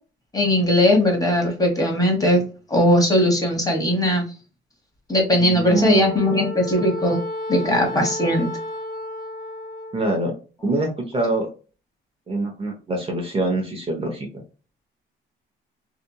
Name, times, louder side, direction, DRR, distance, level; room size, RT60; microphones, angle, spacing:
voice 1, 0.3-2.4 2.7-4.2 5.1-7.2 7.5-8.5, left 1 dB, 20° left, 1 dB, 1.2 m, -19 dB
voice 2, 5.4-6.1 9.9-10.3 10.6-11.5 12.3-14.3, right 2 dB, 30° right, 1 dB, 0.9 m, -24 dB
Wind instrument woodwind instrument, 5.6-10.0, left 1 dB, 55° left, 0.9 m, -32 dB
2.8 x 2.5 x 2.2 m, 0.35 s
cardioid pair, 90°, 20 cm